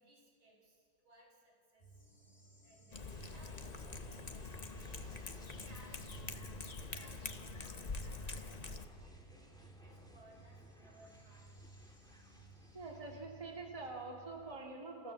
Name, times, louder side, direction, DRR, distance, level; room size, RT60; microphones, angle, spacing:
voice 1, 0.0-2.0 2.6-5.2 5.6-6.5 6.9-11.6 12.2-12.4 12.9-13.0, right 1 dB, 75° right, -2 dB, 6.1 m, -64 dB
sound 1, 1.8-14.6, right 2 dB, 20° left, 3.6 m, -59 dB
Cat, 2.9-8.8, left 3 dB, 50° left, 0.4 m, -45 dB
sound 2, 3.1-13.2, equal, ahead, 1.8 m, -59 dB
voice 2, 12.7-15.1, right 3 dB, 15° right, -1 dB, 2.3 m, -45 dB
29.5 x 15.0 x 7.1 m, 2.3 s
omnidirectional pair, 2.2 m